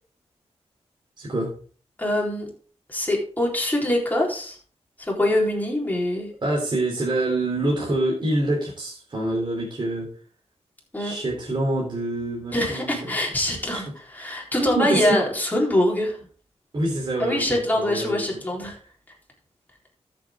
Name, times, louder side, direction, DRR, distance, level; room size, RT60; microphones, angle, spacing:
voice 1, 1.2-1.5 6.4-10.1 11.0-13.2 13.7-13.8 14.6-15.2 16.7-18.2, right 1 dB, 45° right, -2 dB, 3.6 m, -26 dB
voice 2, 2.0-2.5 2.9-4.6 5.0-6.3 10.9-11.1 12.5-16.2 17.2-18.8, left 1 dB, 15° left, -2 dB, 4.0 m, -24 dB
13.0 x 7.6 x 3.8 m, 0.43 s
wide cardioid pair, 95°, 11 cm